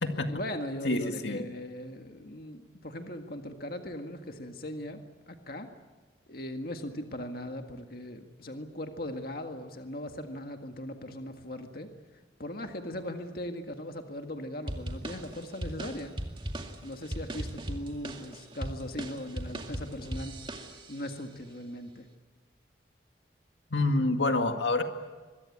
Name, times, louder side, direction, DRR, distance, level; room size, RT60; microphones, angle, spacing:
voice 1, 0.3-5.7 6.3-11.9 12.4-16.2 16.8-20.3 20.9-22.1, left 1 dB, 55° left, 5 dB, 1.8 m, -39 dB
voice 2, 0.8-1.4 23.7-24.8, left 2 dB, 90° left, 5 dB, 2.1 m, -27 dB
sound 1, 14.7-21.1, right 1 dB, 30° right, 2.2 m, -38 dB
25.0 x 22.5 x 8.6 m, 1.3 s
head